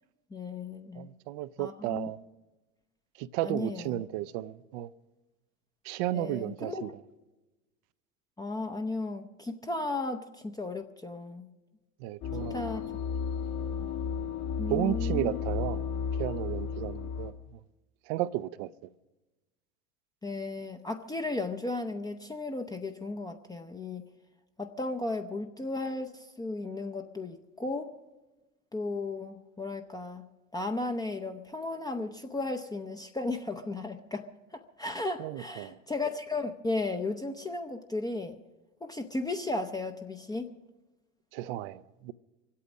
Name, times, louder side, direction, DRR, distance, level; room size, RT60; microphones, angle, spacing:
voice 1, 0.3-1.1 1.6-2.1 3.4-4.0 6.1-6.9 8.4-11.5 12.5-13.0 13.7-13.9 14.6-15.4 20.2-24.0 24.6-27.9 28.7-30.2 30.5-34.3 34.5-38.4 38.8-40.5, left 2 dB, 10° left, 0.6 m, -35 dB
voice 2, 0.9-2.2 3.2-4.9 5.8-6.9 12.0-12.6 14.7-15.8 16.2-17.3 18.1-18.7 35.2-35.8 41.3-42.1, right 14 dB, 55° right, 0.5 m, -33 dB
sound 1, 12.2-17.3, left 6 dB, 60° left, 2.3 m, -33 dB
24.0 x 8.5 x 6.1 m
hypercardioid pair, 90°, 39 cm